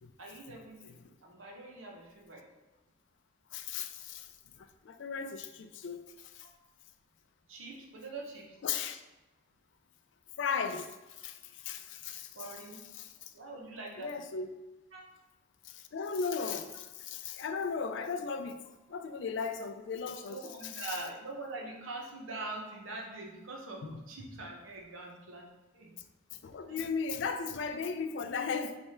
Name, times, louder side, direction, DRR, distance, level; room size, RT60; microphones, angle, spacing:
voice 1, 0.2-1.0 1.2-2.4 6.4-6.5 7.5-8.6 12.3-12.8 13.3-14.1 14.9-15.0 20.3-25.5 25.7-25.9 26.7-26.8, right 2 dB, 85° right, 0 dB, 0.9 m, -43 dB
voice 2, 3.5-6.5 8.6-9.0 10.4-12.6 12.9-13.3 14.0-14.5 15.6-18.6 18.9-21.0 23.8-24.0 26.3-28.8, left 5 dB, 65° left, 8 dB, 0.4 m, -37 dB
3.4 x 3.2 x 4.3 m, 1.1 s
head